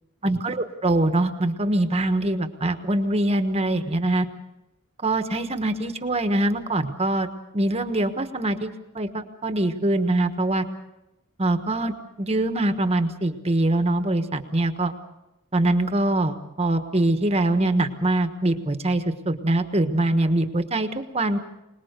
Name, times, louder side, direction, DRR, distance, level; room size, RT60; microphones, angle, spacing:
voice 1, 0.2-4.3 5.0-7.3 7.5-10.6 11.4-14.9 15.5-21.4, right 1 dB, 30° right, 8 dB, 1.3 m, -23 dB
26.5 x 20.0 x 6.7 m, 0.94 s
head